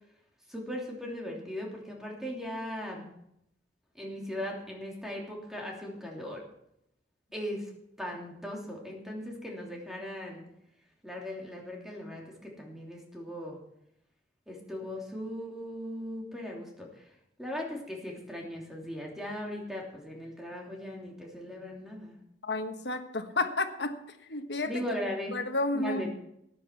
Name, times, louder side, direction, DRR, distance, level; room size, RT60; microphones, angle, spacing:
voice 1, 0.5-3.0 3.9-6.4 7.3-7.7 8.0-10.4 11.0-13.6 14.5-17.0 17.4-22.2 24.7-25.4 25.7-26.1, left 1 dB, 5° right, -1 dB, 3.0 m, -38 dB
voice 2, 22.4-24.0 24.3-24.8 25.3-26.1, left 2 dB, 75° left, 7 dB, 1.3 m, -31 dB
14.0 x 10.0 x 4.7 m, 0.77 s
head